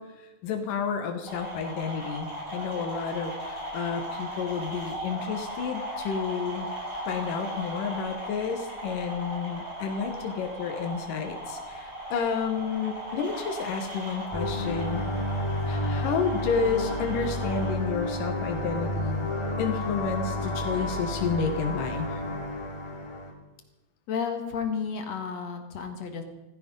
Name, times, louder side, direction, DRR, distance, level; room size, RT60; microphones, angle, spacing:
voice 1, 0.0-6.7 7.1-15.0 15.7-19.3 19.6-22.2, left 6 dB, 90° left, 5 dB, 2.9 m, -31 dB
sound 1, 1.2-17.7, equal, 25° right, 6.7 m, -37 dB
sound 2, 14.3-23.3, left 1 dB, 10° left, 2.3 m, -31 dB
voice 2, 24.1-26.2, left 6 dB, 60° left, 6 dB, 2.5 m, -32 dB
16.0 x 15.5 x 5.3 m, 1.1 s
omnidirectional pair, 3.7 m